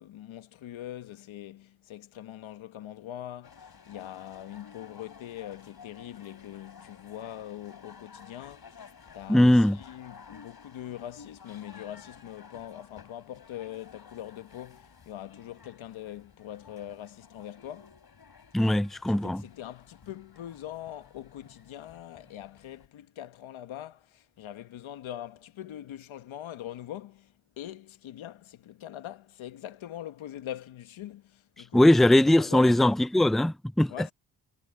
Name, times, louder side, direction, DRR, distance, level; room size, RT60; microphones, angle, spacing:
voice 1, 0.0-18.0 19.1-32.8 33.9-34.1, left 12 dB, 80° left, 1.4 m, -42 dB
sound 1, 3.4-22.9, left 6 dB, 50° left, 3.8 m, -53 dB
voice 2, 9.3-9.8 18.5-19.4 31.7-33.9, left 1 dB, ahead, 0.6 m, -20 dB
supercardioid pair, 50°, 46 cm